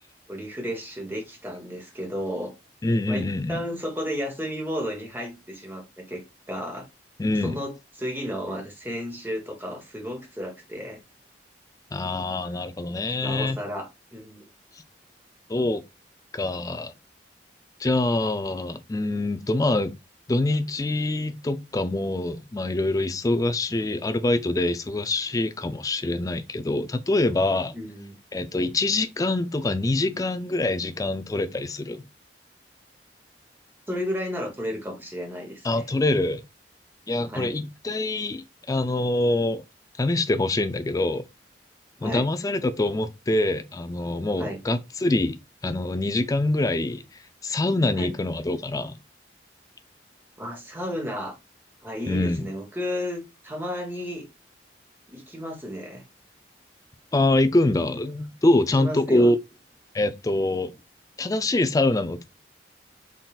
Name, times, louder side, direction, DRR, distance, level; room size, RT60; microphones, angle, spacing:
voice 1, 0.3-2.5 3.1-6.9 7.4-11.0 13.2-14.5 27.7-28.2 33.9-35.9 37.3-37.5 42.0-42.2 44.4-44.6 48.0-48.1 50.4-51.3 51.8-54.2 55.1-56.0 58.7-59.3, equal, 10° right, 1.1 m, -33 dB
voice 2, 2.8-3.6 7.2-7.6 11.9-13.6 15.5-15.8 16.3-16.9 17.8-19.9 20.3-27.8 28.3-32.0 35.6-36.4 37.1-39.6 40.0-41.2 42.0-47.0 47.4-49.0 52.1-52.4 57.1-59.4 59.9-60.7 61.2-62.2, left 2 dB, 20° left, 0.3 m, -25 dB
4.0 x 3.8 x 2.3 m
head